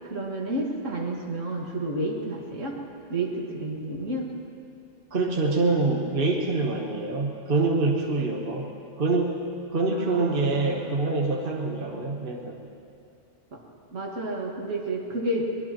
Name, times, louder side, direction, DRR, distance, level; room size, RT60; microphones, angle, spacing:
voice 1, 0.0-2.8 3.1-4.3 9.9-11.0 13.5-13.6 13.9-15.5, right 1 dB, 65° right, -1 dB, 2.3 m, -31 dB
voice 2, 5.1-8.7 9.0-9.4 9.7-12.6, right 3 dB, 45° right, -1 dB, 1.4 m, -25 dB
23.5 x 20.0 x 3.0 m, 2.5 s
omnidirectional pair, 1.4 m